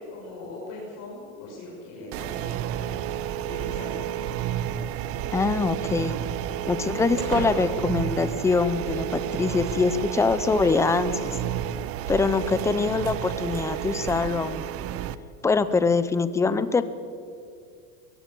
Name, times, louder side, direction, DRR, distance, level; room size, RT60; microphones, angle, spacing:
voice 1, 0.1-3.1 3.5-3.9, left 2 dB, 40° left, -5 dB, 7.2 m, -40 dB
sound 1, 2.1-15.2, right 11 dB, 35° right, 0.7 m, -31 dB
sound 2, 4.6-9.0, right 3 dB, 80° right, 7.6 m, -39 dB
voice 2, 5.3-6.2 6.7-11.3 12.1-14.7 15.4-16.8, left 4 dB, 5° left, 13 dB, 0.6 m, -24 dB
22.0 x 21.5 x 7.7 m, 2.3 s
supercardioid pair, 160°, 40 cm